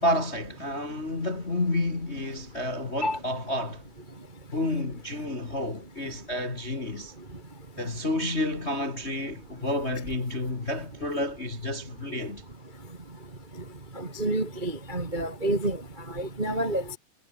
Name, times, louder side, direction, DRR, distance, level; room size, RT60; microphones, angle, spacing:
voice 1, 0.0-3.8 4.5-7.1 7.8-12.4, left 1 dB, 25° left, 1.7 m, -30 dB
voice 2, 13.9-15.8 16.1-17.0, right 1 dB, 20° right, 1.5 m, -28 dB
omnidirectional pair, 4.4 m